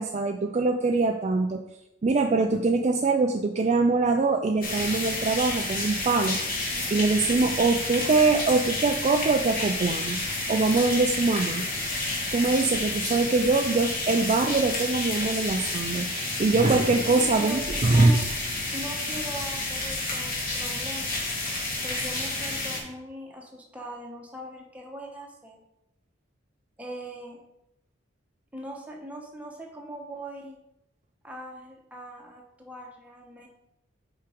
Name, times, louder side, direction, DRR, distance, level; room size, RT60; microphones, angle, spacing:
voice 1, 0.0-1.6 2.0-6.4 6.9-10.2 10.5-11.7 12.3-18.1, right 3 dB, 35° right, 4 dB, 0.4 m, -23 dB
sound 1, 4.6-22.8, left 2 dB, 45° left, 2.0 m, -30 dB
voice 2, 17.9-18.2 18.7-21.2 21.8-25.6 26.8-27.4 28.5-30.6 31.2-33.5, equal, 10° right, -1 dB, 1.2 m, -40 dB
5.7 x 5.0 x 5.1 m, 0.85 s
head